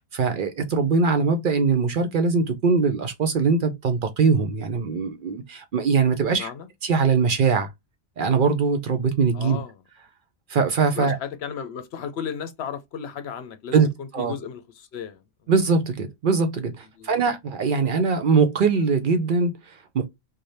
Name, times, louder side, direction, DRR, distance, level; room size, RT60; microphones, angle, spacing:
voice 1, 0.1-6.5 6.8-7.7 8.2-9.6 10.5-11.2 13.7-13.9 14.1-14.4 15.5-20.1, right 5 dB, 60° right, 0.6 m, -22 dB
voice 2, 6.3-6.7 9.3-9.7 10.9-15.2 17.0-17.2 17.8-17.9, left 7 dB, 70° left, 0.9 m, -35 dB
3.3 x 2.1 x 4.0 m
omnidirectional pair, 1.1 m